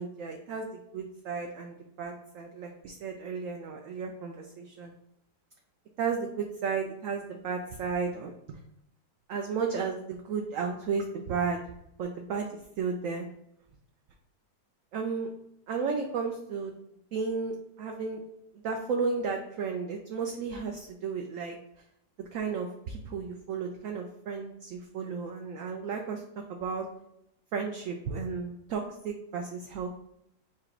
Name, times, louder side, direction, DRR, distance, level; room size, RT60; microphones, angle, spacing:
voice 1, 0.0-4.9 6.0-8.6 9.3-11.6 12.0-13.3 14.9-15.3 15.7-16.7 17.1-18.2 18.6-21.6 22.3-26.2 26.5-26.9 27.5-29.9, right 5 dB, 75° right, 2 dB, 0.7 m, -33 dB
4.7 x 2.5 x 4.3 m, 0.79 s
omnidirectional pair, 1.8 m